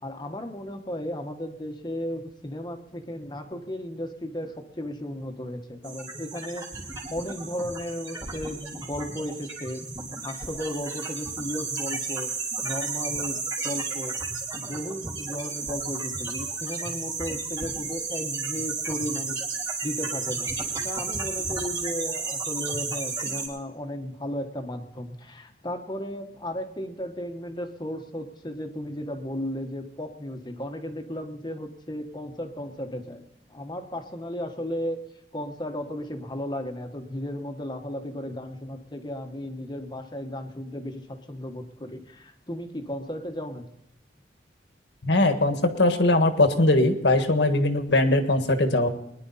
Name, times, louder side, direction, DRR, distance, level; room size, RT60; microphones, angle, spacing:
voice 1, 0.0-14.2 14.5-19.4 19.8-33.2 33.5-35.0 35.3-43.7, left 1 dB, 25° left, 6 dB, 1.2 m, -35 dB
sound 1, 5.8-23.5, right 4 dB, 25° right, 3.2 m, -33 dB
voice 2, 45.0-48.9, left 2 dB, 75° left, 7 dB, 1.6 m, -21 dB
21.0 x 10.5 x 4.1 m, 0.84 s
head